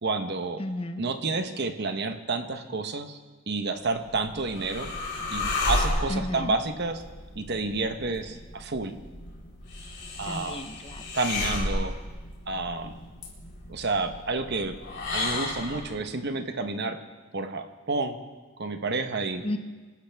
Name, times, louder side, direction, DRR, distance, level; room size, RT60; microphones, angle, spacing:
voice 1, 0.0-0.6 1.0-3.2 3.5-4.9 5.3-7.0 7.4-8.9 10.2-10.6 11.1-12.0 12.5-12.9 13.7-14.7 15.1-17.0 17.3-18.2 18.6-19.4, right 3 dB, 50° right, 7 dB, 1.0 m, -30 dB
voice 2, 0.6-1.1 6.1-6.5 10.2-11.0 19.4-19.6, left 1 dB, 25° left, 8 dB, 0.7 m, -33 dB
sound 1, 3.9-16.0, left 2 dB, 55° left, 3.7 m, -33 dB
26.0 x 12.0 x 3.5 m, 1.3 s
head